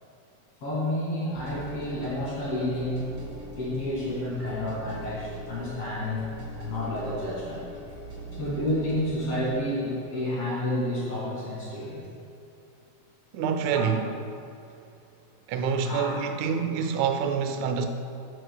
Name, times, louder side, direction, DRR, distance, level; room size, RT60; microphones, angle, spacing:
voice 1, 0.6-3.1 3.6-7.6 8.4-12.1 15.8-16.2, left 1 dB, 50° left, -7 dB, 3.1 m, -30 dB
sound 1, 1.3-11.4, right 1 dB, 30° right, 2.0 m, -42 dB
voice 2, 13.3-14.1 15.5-17.9, right 6 dB, 75° right, 6 dB, 1.8 m, -26 dB
12.5 x 9.2 x 2.3 m, 2.6 s
omnidirectional pair, 3.7 m